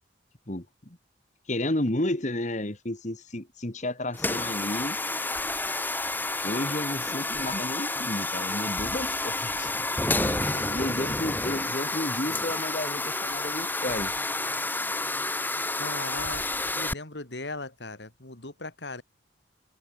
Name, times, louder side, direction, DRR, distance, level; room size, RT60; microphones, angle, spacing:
voice 1, 0.5-1.0 1.5-5.0 6.4-9.7 10.2-10.4 10.7-14.1, left 1 dB, 40° left, 2.2 m, -32 dB
sound 1, 4.1-16.9, left 2 dB, 10° left, 2.3 m, -30 dB
voice 2, 10.2-11.1 15.8-16.4 16.7-19.0, left 2 dB, 70° left, 3.4 m, -38 dB
open air
head